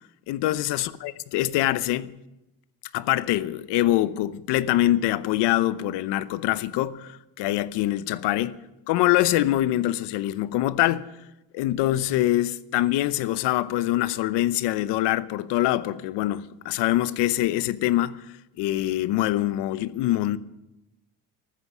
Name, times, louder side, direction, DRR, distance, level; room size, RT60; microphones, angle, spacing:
voice 1, 0.3-2.1 2.9-8.6 8.9-11.1 11.5-18.2 18.6-20.4, left 15 dB, 75° left, 0.8 m, -24 dB
14.5 x 13.5 x 6.1 m
cardioid pair, 120°, 42 cm